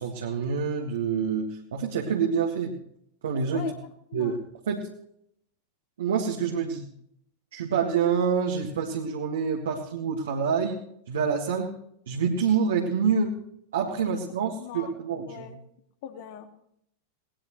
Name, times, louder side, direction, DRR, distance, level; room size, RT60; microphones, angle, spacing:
voice 1, 0.0-2.8 3.2-3.7 4.1-4.4 4.7-4.8 6.0-6.9 7.5-11.8 12.1-13.4 13.7-15.5, right 6 dB, 65° right, 0 dB, 1.9 m, -27 dB
voice 2, 14.3-14.9 15.3-15.6 16.0-16.5, left 9 dB, 50° left, 6 dB, 2.1 m, -40 dB
19.5 x 19.0 x 3.2 m, 0.72 s
figure-of-eight pair, 90°, 0 cm